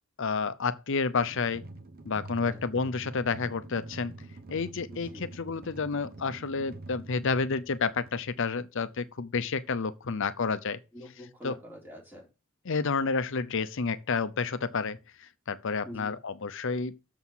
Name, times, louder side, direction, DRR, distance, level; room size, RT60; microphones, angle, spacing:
voice 1, 0.2-1.7 2.0-4.1 4.5-10.8 11.4-11.5 12.7-17.1, left 4 dB, 65° left, 0.7 m, -30 dB
sound 1, 1.2-8.1, right 2 dB, 45° right, 0.8 m, -46 dB
voice 2, 4.9-5.3 10.9-12.3 15.8-16.1, equal, 10° right, 4.0 m, -45 dB
7.0 x 6.3 x 5.6 m
head